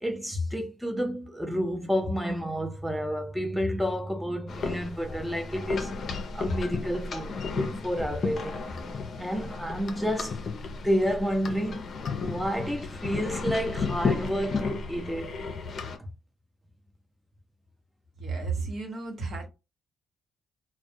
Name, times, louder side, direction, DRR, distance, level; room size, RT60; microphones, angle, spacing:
voice 1, 0.0-5.9 6.3-8.6 9.2-10.4 10.6-11.8 12.2-15.4 16.0-16.1, equal, ahead, 0.6 m, -30 dB
sound 1, 4.5-16.0, left 4 dB, 50° left, 0.5 m, -33 dB
voice 2, 18.2-19.5, right 4 dB, 60° right, 0.9 m, -32 dB
2.3 x 2.1 x 2.6 m
cardioid pair, 90°, 0 cm